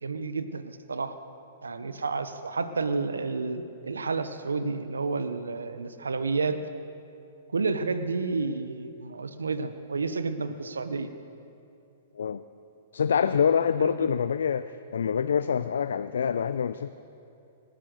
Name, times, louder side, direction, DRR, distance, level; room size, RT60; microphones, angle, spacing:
voice 1, 0.0-1.1 1.6-6.6 7.5-11.1 13.8-14.1, right 4 dB, 90° right, 11 dB, 0.8 m, -30 dB
voice 2, 12.9-16.9, left 7 dB, 75° left, 13 dB, 0.4 m, -26 dB
19.0 x 10.0 x 6.5 m, 2.7 s
hypercardioid pair, 120°, 0 cm